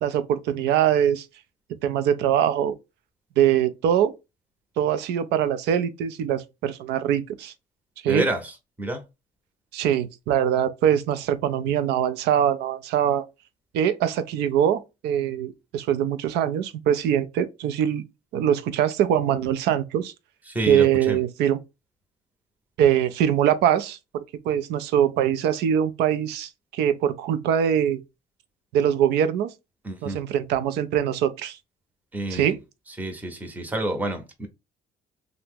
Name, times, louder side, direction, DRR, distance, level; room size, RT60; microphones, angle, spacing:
voice 1, 0.0-1.3 1.8-2.7 3.4-4.1 4.8-7.5 8.0-8.2 9.7-13.2 13.7-18.0 18.3-20.1 20.7-21.6 22.8-28.0 28.7-29.5 30.0-31.6 32.3-32.6, right 9 dB, 85° right, 0.5 m, -23 dB
voice 2, 8.1-9.0 20.5-21.2 29.8-30.2 32.1-32.5 33.0-34.5, right 1 dB, 10° right, 0.7 m, -29 dB
2.8 x 2.0 x 3.5 m
cardioid pair, 110°, 17 cm